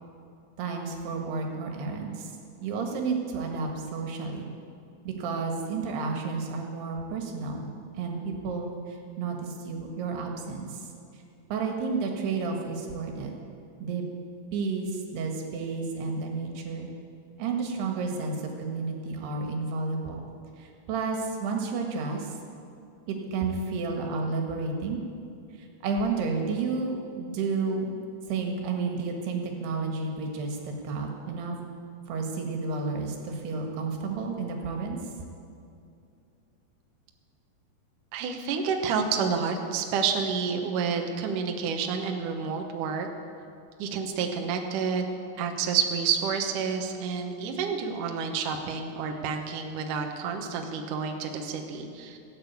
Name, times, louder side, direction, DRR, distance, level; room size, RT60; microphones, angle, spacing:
voice 1, 0.6-2.3 2.6-4.5 5.0-7.7 8.0-10.8 11.5-13.3 13.8-14.0 14.5-16.9 17.4-20.2 20.6-22.4 23.1-25.0 25.6-28.0 28.3-31.6 32.1-35.0, right 4 dB, 80° right, 2 dB, 3.7 m, -31 dB
voice 2, 38.1-43.1 43.8-45.1 45.4-52.2, right 6 dB, 65° right, 3 dB, 2.3 m, -29 dB
16.5 x 8.9 x 8.2 m, 2.5 s
omnidirectional pair, 4.6 m